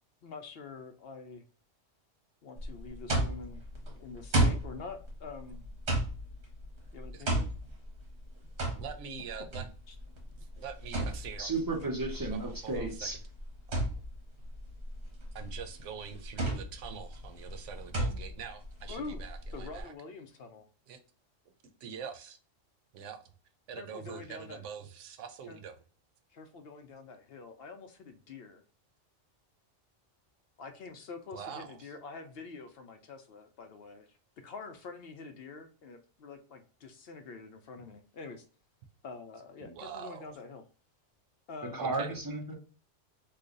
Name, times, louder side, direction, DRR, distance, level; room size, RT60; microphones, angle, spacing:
voice 1, 0.2-1.4 2.4-3.7 4.0-5.6 6.9-7.5 9.9-10.0 18.9-19.2 19.5-20.6 23.8-24.7 25.5-25.6 26.3-28.6 30.6-34.2 34.4-38.4 39.0-40.6 41.5-41.9, left 4 dB, 65° left, 7 dB, 0.7 m, -46 dB
sound 1, 2.6-19.8, right 1 dB, 65° right, 1.5 m, -34 dB
voice 2, 8.8-9.6 10.6-11.5 12.3-12.9 13.7-13.9 15.3-19.9 20.9-21.0 21.8-22.4 22.9-23.2 23.7-25.7 31.3-31.9 39.6-40.3 41.8-42.2, right 7 dB, 90° right, 8 dB, 1.0 m, -44 dB
voice 3, 11.4-13.2 41.7-42.5, right 3 dB, 20° right, 1 dB, 0.7 m, -33 dB
3.3 x 2.3 x 3.7 m, 0.39 s
omnidirectional pair, 1.2 m